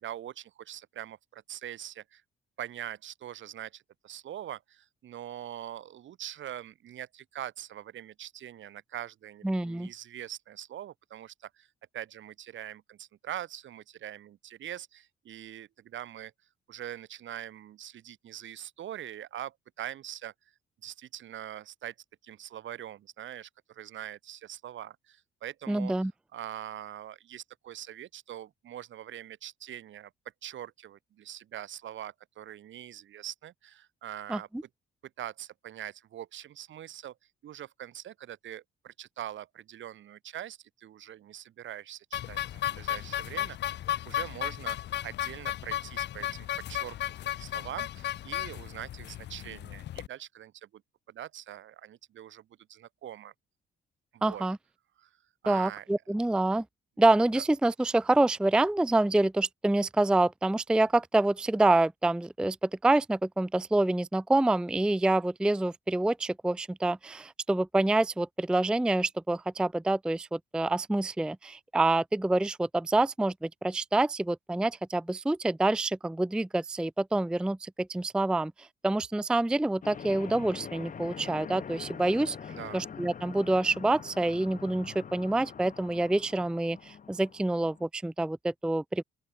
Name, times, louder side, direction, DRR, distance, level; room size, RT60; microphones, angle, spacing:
voice 1, 0.0-2.2 2.6-11.7 11.9-16.3 16.7-20.3 20.8-21.9 22.2-25.9 26.3-30.1 30.4-34.5 35.2-37.2 37.4-43.8 44.1-47.0 47.2-50.8 51.1-53.3 54.1-54.4 55.0-55.2 55.4-55.9 57.3-57.4 82.5-82.8, right 11 dB, 70° right, 7.5 m, -43 dB
voice 2, 9.4-9.9 25.7-26.1 34.3-34.4 54.2-54.6 55.5-56.6 57.0-82.4 82.7-89.0, right 2 dB, 5° right, 0.4 m, -27 dB
sound 1, 42.1-50.1, left 12 dB, 60° left, 0.5 m, -34 dB
sound 2, 79.8-87.9, left 7 dB, 40° left, 1.5 m, -44 dB
open air
cardioid pair, 90°, 20 cm